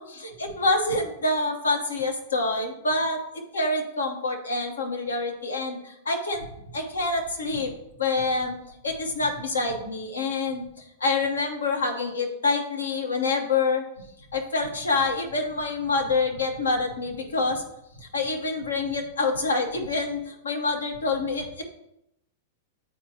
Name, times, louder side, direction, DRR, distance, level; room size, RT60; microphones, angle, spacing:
voice 1, 0.0-3.2 3.5-6.5 6.7-7.7 8.0-8.5 8.8-10.7 11.0-13.8 14.3-17.6 18.0-21.6, left 3 dB, 80° left, 3 dB, 1.1 m, -26 dB
9.2 x 4.4 x 2.8 m, 0.82 s
figure-of-eight pair, 100°, 0 cm